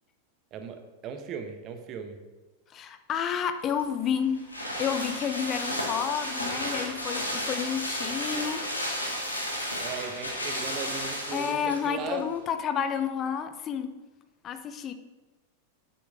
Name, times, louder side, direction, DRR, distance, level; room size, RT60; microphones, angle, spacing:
voice 1, 0.5-2.2 9.8-12.3, right 6 dB, 35° right, 7 dB, 1.0 m, -37 dB
voice 2, 2.7-4.4 4.8-8.6 11.3-13.9 14.4-14.9, left 8 dB, 30° left, 10 dB, 0.7 m, -30 dB
sound 1, 3.7-11.9 12.2-12.3, equal, 80° left, 1.6 m, -33 dB
9.5 x 7.0 x 3.7 m, 1.2 s
figure-of-eight pair, 90°, 0 cm